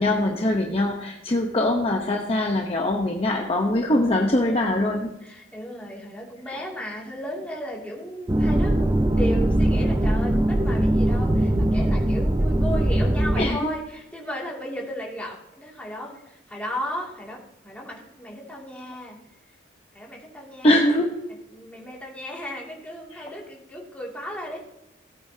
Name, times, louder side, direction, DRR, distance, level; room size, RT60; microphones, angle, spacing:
voice 1, 0.0-5.1 6.5-6.6 13.4-13.6 20.6-21.1 23.1-23.2, left 1 dB, 30° left, 1 dB, 0.9 m, -22 dB
voice 2, 5.2-19.2 19.9-20.9 21.5-24.6, equal, 5° left, -3 dB, 2.5 m, -35 dB
sound 1, 8.3-13.5, right 1 dB, 20° right, 0.6 m, -21 dB
17.0 x 8.7 x 2.8 m, 0.88 s
head